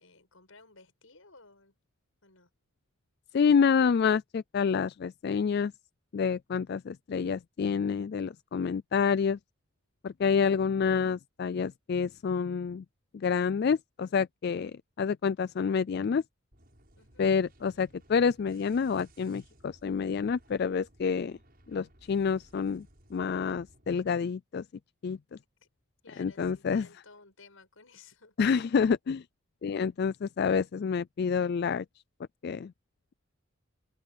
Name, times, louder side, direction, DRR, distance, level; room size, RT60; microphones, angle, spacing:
voice 1, 0.0-1.7 2.2-2.5 17.0-17.3 26.0-28.3, left 4 dB, 80° left, 6.5 m, -56 dB
voice 2, 3.3-5.7 6.1-9.4 10.0-12.8 13.1-16.2 17.2-21.4 21.7-22.9 23.1-24.6 25.0-25.2 26.2-26.9 28.4-29.2 29.6-31.8 32.4-32.7, left 6 dB, 50° left, 0.3 m, -28 dB
sound 1, 16.5-24.1, right 1 dB, 45° right, 7.8 m, -60 dB
open air
head